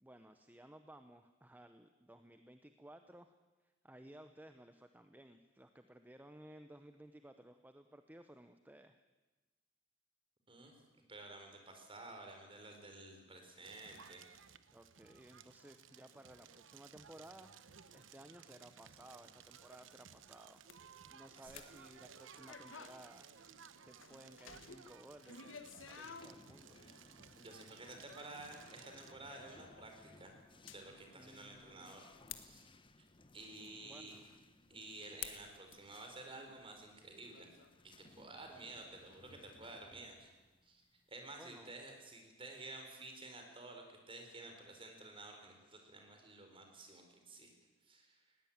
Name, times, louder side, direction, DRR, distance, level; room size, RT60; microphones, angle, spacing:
voice 1, 0.0-3.3 3.6-9.0 14.7-20.6 21.1-26.8 31.2-32.0 33.8-34.4 41.4-41.7, right 1 dB, 10° right, 8 dB, 0.8 m, -58 dB
voice 2, 11.1-14.2 21.4-21.7 27.4-30.4 30.6-32.1 32.4-32.7 33.3-34.2 34.7-37.5 38.2-40.3 40.6-40.8 41.1-47.5 47.8-48.2, right 2 dB, 30° right, 4 dB, 4.3 m, -52 dB
Crackle, 13.6-29.1, right 7 dB, 90° right, 1.0 m, -59 dB
sound 1, 19.7-38.1 38.5-38.9, left 7 dB, 90° left, 1.6 m, -54 dB
sound 2, 24.5-41.8, left 2 dB, 25° left, 0.9 m, -64 dB
20.0 x 16.5 x 8.8 m, 1.2 s
head